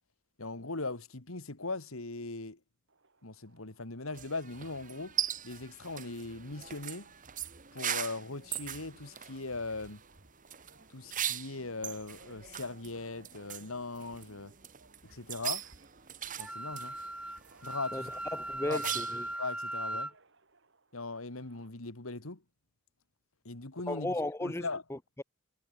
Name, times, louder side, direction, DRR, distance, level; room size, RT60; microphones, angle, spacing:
voice 1, 0.4-2.6 3.2-5.2 5.4-7.1 7.7-10.0 10.9-14.5 15.0-15.7 16.4-17.0 17.6-18.1 18.6-18.9 19.3-20.1 20.9-22.4 23.4-24.1 24.4-24.8, left 3 dB, 75° left, 2.4 m, -39 dB
Subway metro underground, 2.9-21.7, right 4 dB, 60° right, 7.0 m, -65 dB
sound 1, 4.1-19.3, right 10 dB, 40° right, 2.0 m, -41 dB
Wind instrument woodwind instrument, 16.4-20.1, right 1 dB, 5° right, 0.5 m, -38 dB
voice 2, 17.9-19.2 23.9-25.2, left 1 dB, 10° left, 0.9 m, -36 dB
head